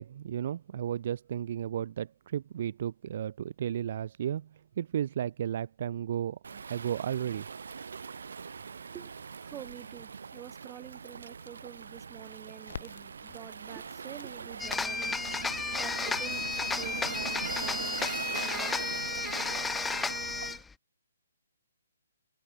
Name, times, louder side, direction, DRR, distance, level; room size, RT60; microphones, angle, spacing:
voice 1, 0.0-4.5 4.8-7.5, right 10 dB, 45° right, 0.6 m, -34 dB
Waves surf, 6.4-20.6, right 5 dB, 75° right, 1.5 m, -41 dB
voice 2, 8.7-19.0 19.5-19.6, right 12 dB, 15° right, 2.3 m, -48 dB
Crackle, 12.7-20.6, left 7 dB, 55° left, 7.2 m, -52 dB
sound 1, 14.6-20.7, left 4 dB, 5° left, 0.3 m, -33 dB
hypercardioid pair, 160°, 0 cm